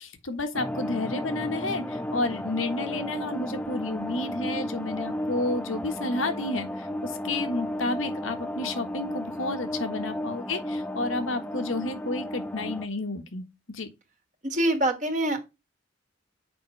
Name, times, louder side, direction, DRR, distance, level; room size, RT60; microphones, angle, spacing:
voice 1, 0.0-13.9, left 2 dB, 85° left, 1.5 m, -31 dB
sound 1, 0.5-12.9, left 1 dB, 5° left, 0.4 m, -33 dB
voice 2, 14.4-15.4, right 1 dB, 40° right, 1.8 m, -25 dB
7.7 x 5.2 x 3.3 m
head